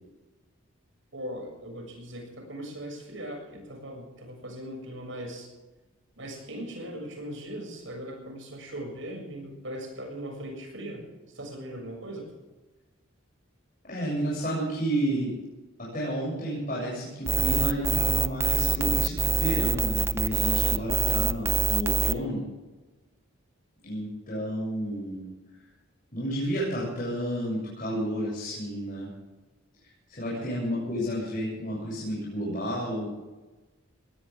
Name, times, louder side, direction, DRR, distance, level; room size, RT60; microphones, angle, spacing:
voice 1, 1.1-5.5 6.2-11.1 11.3-12.3 30.3-30.5, right 1 dB, 65° right, 3 dB, 7.0 m, -39 dB
voice 2, 13.9-15.3 15.8-22.4 23.8-25.2 26.1-29.1 30.1-33.1, equal, 40° left, -7 dB, 7.6 m, -31 dB
sound 1, 17.3-22.1, right 4 dB, 10° right, 0.4 m, -25 dB
20.5 x 18.5 x 3.7 m, 1.2 s
head